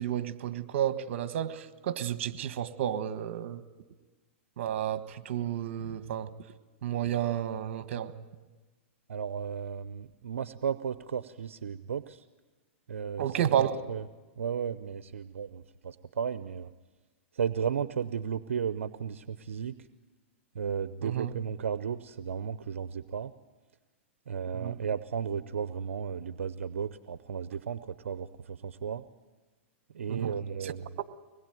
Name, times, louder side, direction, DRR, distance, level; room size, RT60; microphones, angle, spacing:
voice 1, 0.0-3.6 4.6-6.3 6.8-8.1 13.2-13.8 21.0-21.3 24.5-24.8 30.1-30.3 30.6-30.7, right 10 dB, 65° right, 11 dB, 1.5 m, -31 dB
voice 2, 9.1-12.2 12.9-14.0 14.4-16.7 17.3-19.8 20.5-23.3 24.3-29.0 29.9-30.9, right 7 dB, 85° right, 13 dB, 0.8 m, -34 dB
24.0 x 20.5 x 9.2 m, 1.3 s
hypercardioid pair, 125°, 7 cm